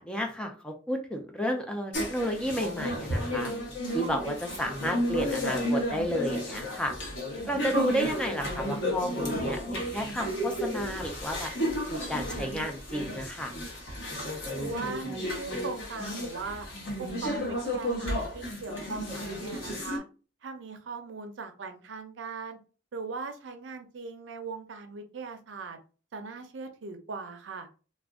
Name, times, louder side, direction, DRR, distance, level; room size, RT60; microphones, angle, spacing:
voice 1, 0.0-3.5 3.9-7.0 7.5-11.5 11.9-13.5, equal, 5° left, 3 dB, 0.4 m, -32 dB
sound 1, 1.9-20.0, left 1 dB, 85° left, 0.9 m, -33 dB
voice 2, 14.5-16.7 17.0-20.0 20.4-22.6 22.9-25.8 26.1-27.7, right 4 dB, 75° right, 7 dB, 0.5 m, -39 dB
2.4 x 2.1 x 3.5 m, 0.35 s
head